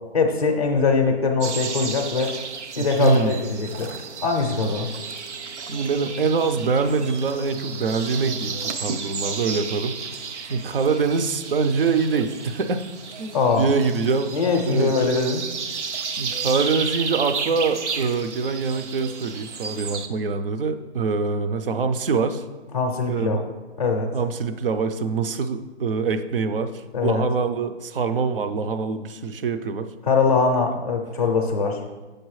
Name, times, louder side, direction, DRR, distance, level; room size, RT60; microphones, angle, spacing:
voice 1, 0.1-2.3 2.8-3.9 4.2-4.9 13.3-13.7 14.3-15.4 22.7-23.4 23.8-24.1 26.9-27.2 30.0-31.8, left 4 dB, 30° left, 1 dB, 0.5 m, -22 dB
sound 1, 1.4-20.1, right 5 dB, 90° right, 0.8 m, -33 dB
voice 2, 2.8-3.4 5.6-10.0 10.5-12.8 13.2-14.4 14.6-14.9 16.2-22.4 23.1-23.4 24.1-29.9, right 4 dB, 55° right, 9 dB, 0.5 m, -24 dB
8.0 x 6.5 x 3.1 m, 1.3 s
hypercardioid pair, 180°, 34 cm